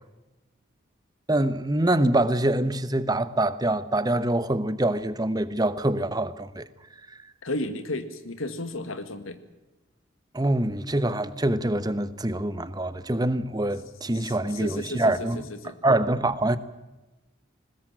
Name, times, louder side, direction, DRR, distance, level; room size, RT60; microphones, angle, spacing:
voice 1, 1.3-6.7 10.3-15.4 15.8-16.6, right 1 dB, 20° right, 1.0 m, -25 dB
voice 2, 7.4-9.4 14.1-15.8, left 2 dB, 85° left, 2.0 m, -34 dB
21.0 x 20.0 x 7.6 m
head